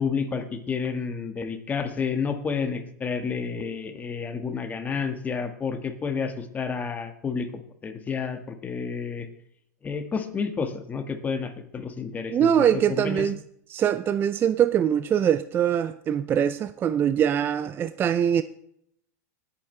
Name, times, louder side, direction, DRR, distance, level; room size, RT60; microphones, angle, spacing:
voice 1, 0.0-7.5 7.8-9.3 9.8-13.3, left 5 dB, 15° left, 1.7 m, -30 dB
voice 2, 12.3-13.4 13.7-18.4, right 9 dB, 25° right, 0.5 m, -23 dB
20.0 x 8.8 x 3.3 m
supercardioid pair, 135°, 9 cm